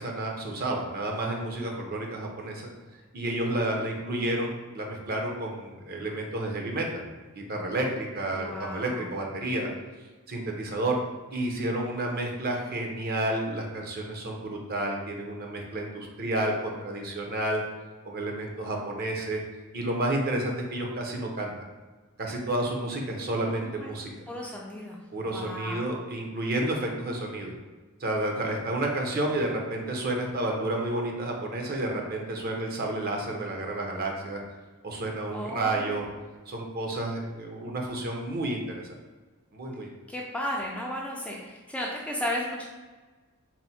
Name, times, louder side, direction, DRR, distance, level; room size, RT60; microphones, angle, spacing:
voice 1, 0.0-2.7 3.1-7.1 7.3-9.7 10.3-11.0 11.3-17.6 18.0-19.4 19.7-21.5 22.2-24.1 25.1-27.5 28.0-34.4 34.8-36.1 36.5-38.6 39.5-39.9, right 1 dB, 45° right, 0 dB, 0.7 m, -30 dB
voice 2, 8.3-9.1 23.5-23.9 24.3-25.0 25.3-25.8 35.3-36.0 40.1-42.6, left 1 dB, 5° left, -3 dB, 0.4 m, -34 dB
4.1 x 2.1 x 4.2 m, 1.3 s
head